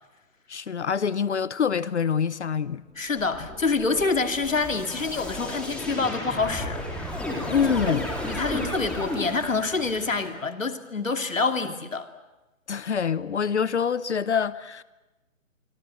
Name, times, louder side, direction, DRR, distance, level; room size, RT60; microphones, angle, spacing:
voice 1, 0.5-2.9 7.5-8.1 12.7-14.8, left 7 dB, 55° left, 0.9 m, -25 dB
voice 2, 3.0-6.8 7.4-7.5 7.8-7.9 8.3-12.1, left 4 dB, 75° left, 2.7 m, -27 dB
sound 1, 3.2-10.3, left 1 dB, 5° left, 4.0 m, -33 dB
27.0 x 24.5 x 7.8 m
figure-of-eight pair, 135°, 40 cm